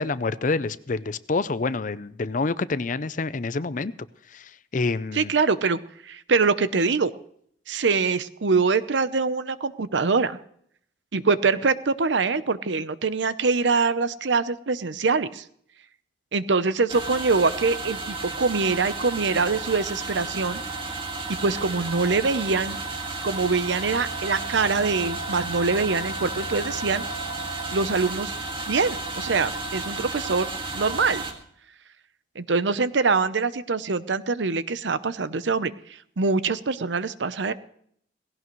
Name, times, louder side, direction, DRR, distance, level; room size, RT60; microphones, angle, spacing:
voice 1, 0.0-3.9 4.3-5.3, left 3 dB, 45° left, 15 dB, 0.5 m, -27 dB
voice 2, 5.1-5.8 6.0-7.1 7.7-10.4 11.1-15.4 16.3-20.6 21.4-22.8 23.2-27.0 27.7-28.3 28.7-30.5 30.7-31.2 32.4-35.7 36.2-37.5, right 4 dB, 80° right, 14 dB, 0.8 m, -24 dB
sound 1, 16.9-31.3, right 3 dB, 30° right, 2.0 m, -32 dB
18.0 x 16.5 x 3.1 m, 0.66 s
head